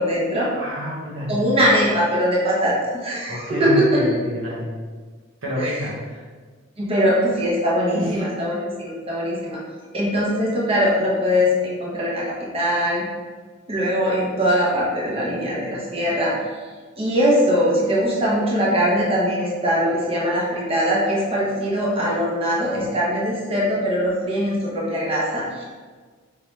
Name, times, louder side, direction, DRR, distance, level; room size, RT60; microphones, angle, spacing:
voice 1, 0.0-0.5 1.3-4.0 5.6-5.7 6.8-9.6 9.9-13.1 13.7-16.3 17.0-25.6, equal, 30° right, -5 dB, 0.9 m, -21 dB
voice 2, 0.5-1.5 3.3-4.7 5.4-6.2 7.9-8.4, left 1 dB, 75° right, -4 dB, 1.1 m, -28 dB
5.1 x 2.9 x 3.1 m, 1.5 s
head